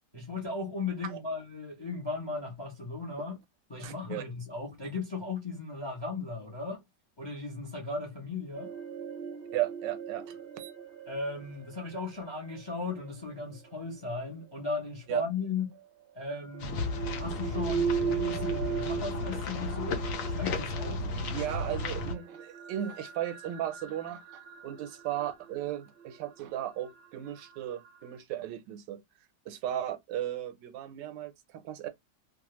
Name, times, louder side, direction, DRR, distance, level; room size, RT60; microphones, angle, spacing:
voice 1, 0.1-3.4 3.7-6.8 7.2-8.7 11.1-15.8 16.1-16.9 17.1-21.0, left 3 dB, 30° left, 0.4 m, -36 dB
voice 2, 3.8-4.2 9.5-10.7 15.1-15.2 21.0-29.0 29.5-31.9, right 12 dB, 85° right, 1.3 m, -36 dB
sound 1, 8.5-14.6 15.7-28.2, right 6 dB, 60° right, 0.5 m, -39 dB
sound 2, 16.6-22.1, left 2 dB, 60° left, 0.9 m, -34 dB
2.9 x 2.3 x 3.0 m
omnidirectional pair, 1.9 m